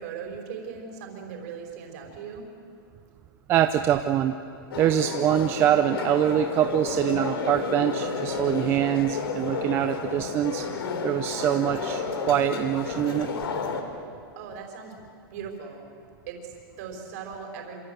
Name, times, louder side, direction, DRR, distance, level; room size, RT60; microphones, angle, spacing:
voice 1, 0.0-2.5 14.4-15.0 15.3-15.9 16.3-17.8, right 6 dB, 45° right, 3 dB, 5.3 m, -39 dB
voice 2, 3.5-4.4 4.8-10.7 11.0-13.3, right 11 dB, 20° right, 8 dB, 0.6 m, -24 dB
sound 1, 4.7-13.8, left 4 dB, 85° left, 3.9 m, -31 dB
27.5 x 26.0 x 8.1 m, 2.6 s
supercardioid pair, 170°, 12 cm